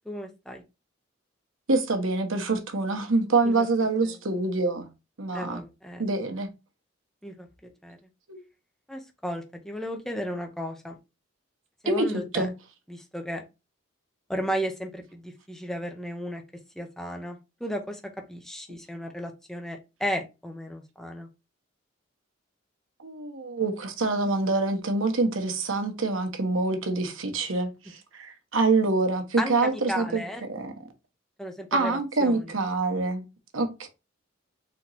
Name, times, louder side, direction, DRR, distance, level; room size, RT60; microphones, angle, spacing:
voice 1, 0.1-0.6 3.4-3.7 5.3-6.0 7.2-7.5 7.8-8.0 8.9-11.0 11.8-12.5 12.9-13.4 14.3-16.4 16.8-18.0 18.3-21.3 29.4-30.4 31.4-32.4, equal, ahead, 0.7 m, -34 dB
voice 2, 1.7-4.9 5.2-5.6 6.0-6.5 8.3-8.4 11.8-12.1 12.3-12.5 23.0-30.2 30.5-30.7 31.7-33.2 33.5-33.9, right 3 dB, 80° right, 1.1 m, -26 dB
4.3 x 3.0 x 4.0 m
head